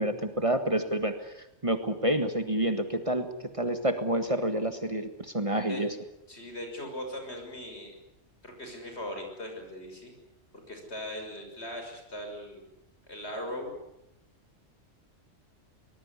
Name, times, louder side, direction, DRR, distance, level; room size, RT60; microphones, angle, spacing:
voice 1, 0.0-3.3 3.5-5.9, right 1 dB, 30° right, 8 dB, 1.7 m, -28 dB
voice 2, 6.3-7.9 8.4-10.1 10.5-12.6 13.1-13.7, left 1 dB, 65° left, 3 dB, 6.5 m, -39 dB
24.0 x 20.0 x 9.8 m, 0.86 s
omnidirectional pair, 1.2 m